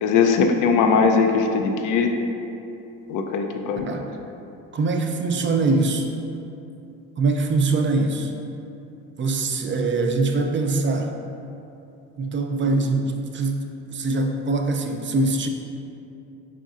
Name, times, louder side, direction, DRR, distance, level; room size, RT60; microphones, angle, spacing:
voice 1, 0.0-2.1 3.1-4.0, left 5 dB, 65° left, 5 dB, 0.5 m, -20 dB
voice 2, 4.7-6.1 7.2-8.3 9.2-11.2 12.2-13.6 13.9-15.5, right 3 dB, 35° right, 4 dB, 0.5 m, -23 dB
5.1 x 4.2 x 2.4 m, 2.8 s
supercardioid pair, 80°, 34 cm